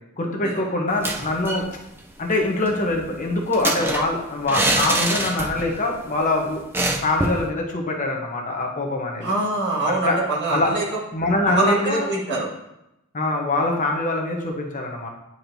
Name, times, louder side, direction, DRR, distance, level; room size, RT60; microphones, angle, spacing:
voice 1, 0.2-1.7 2.2-6.6 7.0-9.3 10.0-10.2 10.5-10.7 11.1-12.0 13.1-15.1, left 2 dB, 35° left, 1 dB, 0.9 m, -24 dB
sound 1, 0.9-1.7 2.0-2.1 2.4-5.8 6.1-6.2 6.7-7.5, right 2 dB, 10° right, 0.4 m, -25 dB
voice 2, 9.2-10.8 11.5-12.5, right 2 dB, 55° right, -4 dB, 1.7 m, -24 dB
9.4 x 4.4 x 2.7 m, 0.89 s
head